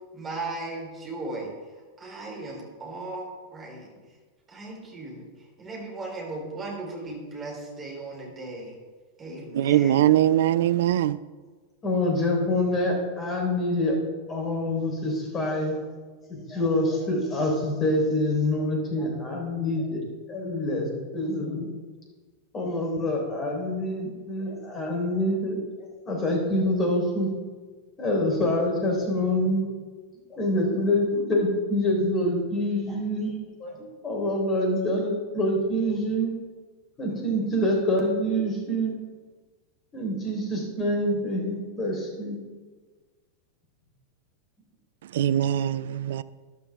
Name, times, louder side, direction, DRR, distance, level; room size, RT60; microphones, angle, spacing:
voice 1, 0.1-1.5 2.0-3.9 4.5-5.3 5.6-8.8 9.2-10.1, right 2 dB, 20° right, 4.3 m, -37 dB
voice 2, 9.5-11.2 45.1-46.2, right 12 dB, 55° right, 0.4 m, -22 dB
voice 3, 11.8-14.0 14.3-15.8 16.2-20.0 20.3-21.7 22.5-25.6 26.1-27.3 28.0-29.6 30.3-36.3 37.0-38.9 39.9-42.4, left 1 dB, 25° left, 3.9 m, -26 dB
13.5 x 12.0 x 3.6 m
figure-of-eight pair, 90°, 0 cm